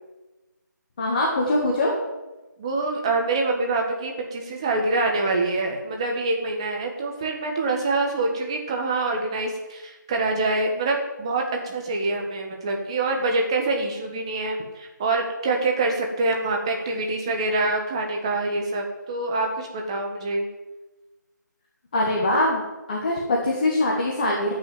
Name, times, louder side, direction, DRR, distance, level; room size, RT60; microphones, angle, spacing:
voice 1, 1.0-1.9 21.9-22.6 22.9-24.5, left 1 dB, 25° left, -2 dB, 1.9 m, -22 dB
voice 2, 2.6-20.5, right 2 dB, 15° right, 2 dB, 1.5 m, -25 dB
13.5 x 6.3 x 9.2 m, 1.1 s
figure-of-eight pair, 165°, 10 cm